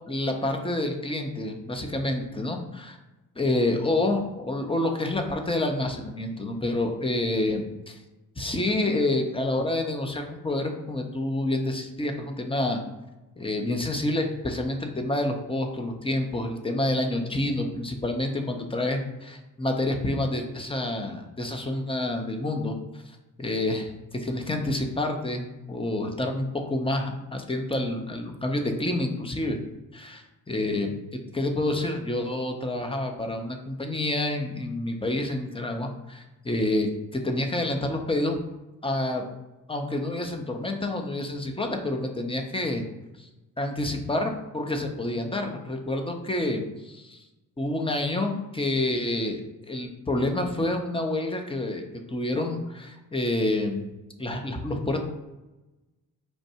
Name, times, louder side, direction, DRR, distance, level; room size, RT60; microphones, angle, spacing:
voice 1, 0.1-2.9 3.4-8.0 8.4-12.8 13.4-22.7 23.4-29.6 29.9-30.9 31.3-38.4 38.8-39.2 39.7-42.8 43.2-43.3 43.6-47.2 47.6-49.4 49.7-53.9 54.2-55.0, left 1 dB, 10° left, 3 dB, 0.9 m, -28 dB
4.7 x 2.5 x 4.3 m, 1.0 s
hypercardioid pair, 45°, 45 cm